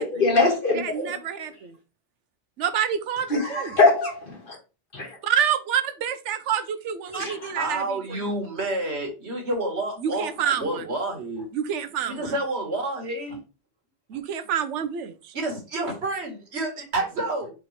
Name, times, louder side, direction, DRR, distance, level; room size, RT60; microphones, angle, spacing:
voice 1, 0.0-1.1 3.3-4.2 4.5-4.6 4.9-5.1 7.1-7.5, left 3 dB, 50° left, 1.6 m, -22 dB
voice 2, 0.7-1.7 2.6-3.7 5.2-8.0 10.0-10.8 11.5-12.3 14.1-15.1, right 8 dB, 85° right, 0.9 m, -27 dB
voice 3, 7.5-11.5 12.1-13.4 15.3-17.5, right 2 dB, 65° right, 1.6 m, -29 dB
4.4 x 3.8 x 3.1 m
omnidirectional pair, 1.2 m